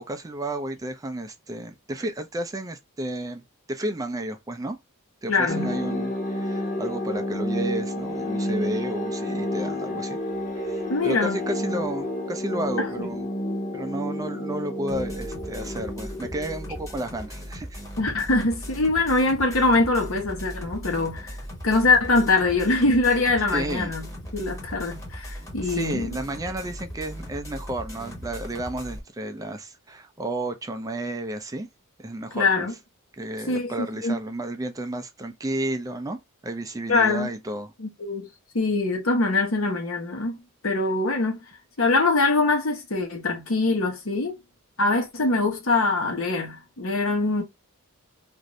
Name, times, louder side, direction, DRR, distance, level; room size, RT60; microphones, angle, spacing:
voice 1, 0.0-3.4 3.7-4.8 5.2-10.2 10.6-13.3 13.7-17.8 23.5-23.9 25.6-31.7 32.0-32.7 33.2-37.7, right 1 dB, 15° right, 0.4 m, -32 dB
voice 2, 5.3-5.7 10.9-11.4 12.8-13.1 18.0-21.4 21.6-24.0 24.3-26.1 32.3-32.7 33.5-34.2 36.9-37.3 37.8-38.3 38.5-40.4 40.6-41.4 41.8-44.4 44.8-47.4, left 3 dB, 65° left, 1.0 m, -23 dB
sound 1, 5.5-17.3, equal, 40° left, 1.1 m, -30 dB
sound 2, 14.9-29.0, equal, 15° left, 1.0 m, -38 dB
2.6 x 2.5 x 3.0 m
head